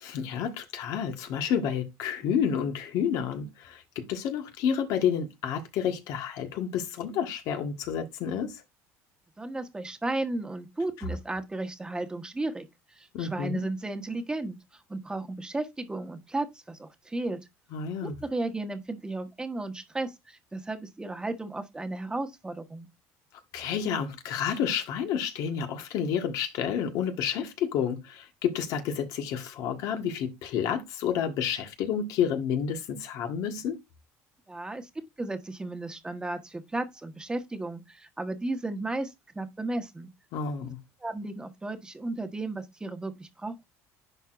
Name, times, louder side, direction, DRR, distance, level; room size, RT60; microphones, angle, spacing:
voice 1, 0.0-8.6 13.1-13.6 17.7-18.2 23.5-33.8 40.3-40.8, left 8 dB, 65° left, 1.5 m, -30 dB
voice 2, 9.4-12.7 13.0-17.4 18.0-22.9 34.5-40.1 41.0-43.7, right 2 dB, 10° right, 1.2 m, -34 dB
10.5 x 4.5 x 2.5 m
supercardioid pair, 105°, 7 cm